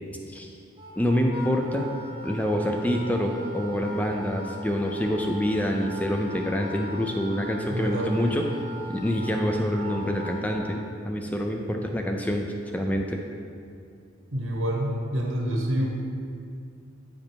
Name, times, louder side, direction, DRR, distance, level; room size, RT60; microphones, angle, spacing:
Wind instrument woodwind instrument, 0.8-10.7, equal, 25° right, 0.9 m, -41 dB
voice 1, 1.0-1.9 2.2-8.4 8.9-12.5 12.7-13.2, equal, 5° left, 2 dB, 0.4 m, -26 dB
voice 2, 7.7-8.4 14.3-15.9, right 1 dB, 75° right, -1 dB, 1.3 m, -27 dB
8.4 x 5.1 x 4.5 m, 2.4 s
head